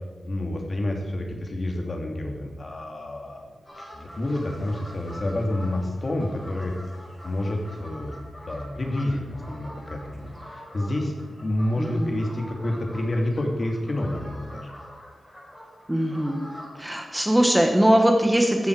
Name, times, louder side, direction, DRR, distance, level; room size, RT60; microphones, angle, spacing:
voice 1, 0.2-3.4 3.8-6.7 7.2-8.2 8.4-11.1 11.4-14.7, left 1 dB, 35° left, 2 dB, 2.7 m, -29 dB
sound 1, 3.6-16.7, equal, 10° left, 5.9 m, -44 dB
voice 2, 11.8-12.2 15.9-16.4 16.8-18.7, right 1 dB, 10° right, 3 dB, 1.3 m, -21 dB
16.0 x 14.0 x 4.8 m, 1.2 s
wide cardioid pair, 160°, 0 cm